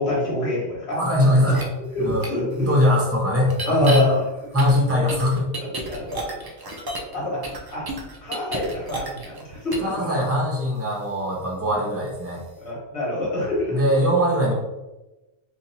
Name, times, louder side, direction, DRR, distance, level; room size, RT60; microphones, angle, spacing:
voice 1, 0.0-1.0 1.9-2.7 3.7-4.2 5.6-6.4 7.1-7.5 7.7-7.8 8.2-10.1 12.6-13.8, left 1 dB, 70° left, -5 dB, 1.8 m, -26 dB
voice 2, 0.9-1.7 2.0-4.2 4.5-5.5 9.8-12.4 13.7-14.5, left 1 dB, 15° right, -3 dB, 0.9 m, -21 dB
sound 1, 1.5-1.6 2.2-2.3 3.5-4.0 4.6-7.1 7.4-9.4 9.7-9.9, right 1 dB, 35° right, 0.4 m, -31 dB
2.9 x 2.8 x 4.0 m, 1.0 s
omnidirectional pair, 1.1 m